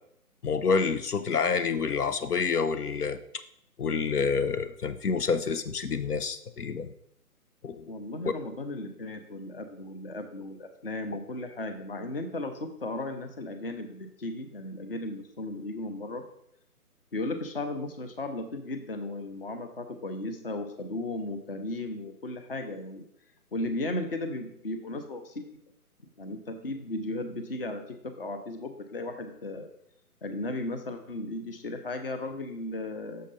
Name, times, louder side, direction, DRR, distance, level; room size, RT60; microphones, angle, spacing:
voice 1, 0.4-3.2 3.8-6.9 7.6-7.8, left 5 dB, 75° left, 12 dB, 0.7 m, -28 dB
voice 2, 7.9-16.3 17.1-23.0 23.5-25.5 26.2-29.7 30.2-33.2, left 2 dB, 40° left, 7 dB, 0.7 m, -35 dB
6.5 x 5.0 x 4.0 m, 0.73 s
figure-of-eight pair, 150°, 46 cm